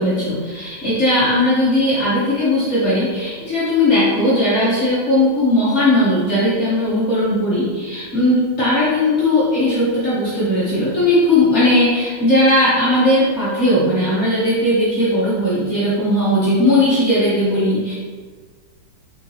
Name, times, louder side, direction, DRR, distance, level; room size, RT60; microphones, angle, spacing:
voice 1, 0.0-17.9, left 1 dB, 50° left, -10 dB, 0.9 m, -17 dB
4.6 x 2.5 x 2.7 m, 1.5 s
omnidirectional pair, 2.3 m